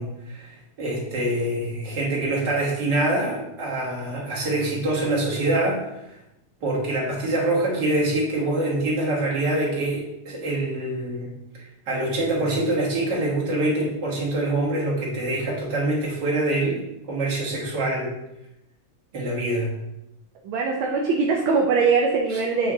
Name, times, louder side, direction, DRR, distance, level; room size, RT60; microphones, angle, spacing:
voice 1, 0.0-5.8 6.6-11.3 11.9-16.8 17.1-18.1 19.1-19.7 22.3-22.4, right 1 dB, 55° right, -4 dB, 2.1 m, -25 dB
voice 2, 20.4-22.7, right 4 dB, 75° right, -1 dB, 1.5 m, -22 dB
8.0 x 3.3 x 3.6 m, 0.90 s
omnidirectional pair, 2.4 m